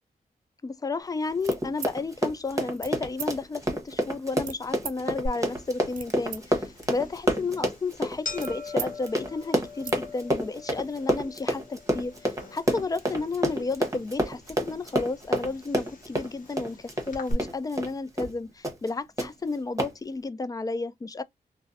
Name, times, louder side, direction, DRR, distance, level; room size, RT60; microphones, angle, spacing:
voice 1, 0.6-21.2, left 3 dB, 25° left, 0.3 m, -32 dB
Run, 1.3-17.9 18.2-18.3 18.6-18.9 19.2-19.3 19.8-19.9, equal, 20° right, 1.0 m, -28 dB
sound 1, 1.4-2.0 2.7-2.9 3.2-3.3 4.4-5.0 5.7-6.4 6.7-8.9 9.3-9.4 9.7-10.0, right 8 dB, 65° right, 0.5 m, -40 dB
sound 2, 5.3-17.3, left 2 dB, 60° left, 0.9 m, -43 dB
2.5 x 2.1 x 2.5 m
cardioid pair, 60°, 16 cm